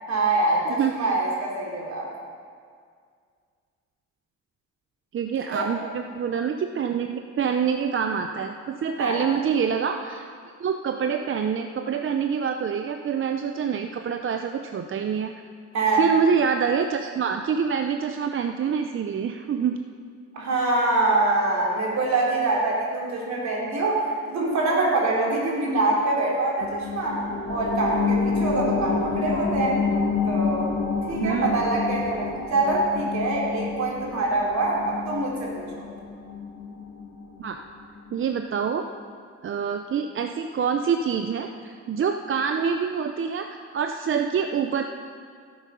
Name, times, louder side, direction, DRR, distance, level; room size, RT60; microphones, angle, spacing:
voice 1, 0.1-2.1 5.5-5.7 9.0-9.2 15.7-16.1 20.3-27.2 27.5-29.8 30.3-30.7 31.1-35.8, right 2 dB, 65° right, -3 dB, 3.3 m, -24 dB
voice 2, 5.1-15.3 15.9-19.8 31.2-31.6 37.4-37.6 38.1-38.8 39.4-44.8, right 6 dB, 45° right, 6 dB, 0.6 m, -26 dB
sound 1, 26.6-37.7 38.1-38.2, left 4 dB, 65° left, 1.7 m, -28 dB
13.5 x 7.9 x 5.5 m, 2.1 s
cardioid pair, 90°, 30 cm